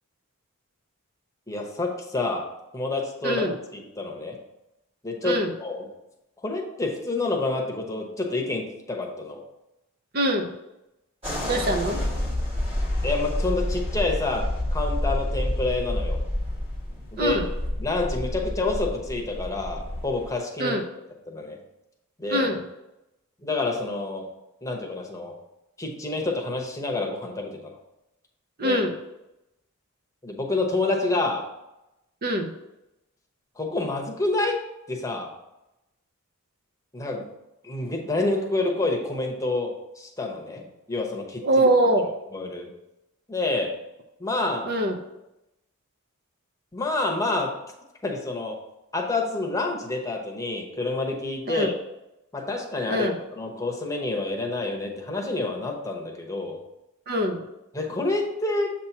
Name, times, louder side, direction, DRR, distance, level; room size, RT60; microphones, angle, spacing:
voice 1, 1.5-2.5 2.7-4.4 5.0-5.8 6.4-9.4 13.0-16.2 17.1-17.4 17.8-20.8 21.3-21.6 22.2-22.5 23.4-24.3 24.6-25.4 25.8-27.8 28.6-28.8 30.2-31.5 33.6-34.6 34.9-35.3 36.9-37.3 37.6-41.5 42.3-42.7 43.3-43.8 44.2-44.7 46.7-47.6 48.0-48.6 48.9-51.7 52.3-56.6 57.7-58.7, left 2 dB, 15° left, 1 dB, 0.9 m, -28 dB
voice 2, 3.2-3.5 5.2-5.5 10.1-10.5 11.4-12.0 17.2-17.5 20.6-20.8 22.3-22.6 28.6-29.0 32.2-32.5 41.4-42.1 44.7-45.0 51.5-51.7 52.9-53.2 57.1-57.5, right 1 dB, 45° right, 4 dB, 0.6 m, -23 dB
sound 1, 11.2-20.3, left 1 dB, 25° right, 1.6 m, -29 dB
7.4 x 2.9 x 5.9 m, 0.92 s
head